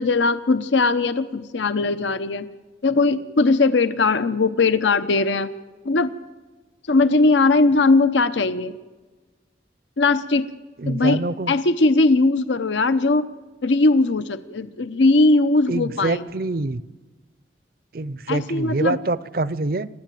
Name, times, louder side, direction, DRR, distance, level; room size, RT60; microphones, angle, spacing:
voice 1, 0.0-2.5 2.8-5.5 5.8-6.1 6.9-8.7 10.0-10.5 10.9-13.3 13.6-16.3 18.3-19.0, left 3 dB, 85° left, 12 dB, 0.8 m, -19 dB
voice 2, 10.8-11.5 15.7-16.8 17.9-19.9, right 2 dB, 50° right, 18 dB, 0.6 m, -25 dB
28.5 x 12.5 x 9.2 m, 1.3 s
head